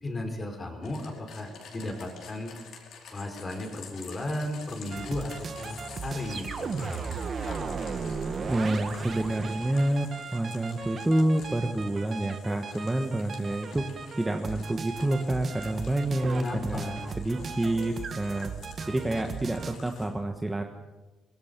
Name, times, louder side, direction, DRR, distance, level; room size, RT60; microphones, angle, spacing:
voice 1, 0.0-2.6 3.1-7.1 7.4-7.7 16.4-17.0, left 1 dB, 20° left, 5 dB, 4.3 m, -35 dB
sound 1, 0.8-20.1, left 6 dB, 55° left, 5.0 m, -50 dB
sound 2, 4.9-19.8, right 5 dB, 30° right, 1.6 m, -37 dB
voice 2, 8.5-13.8 14.2-18.5 18.9-20.6, right 1 dB, 10° right, 4 dB, 1.4 m, -28 dB
24.5 x 22.5 x 6.9 m, 1.1 s
cardioid pair, 175°, 0 cm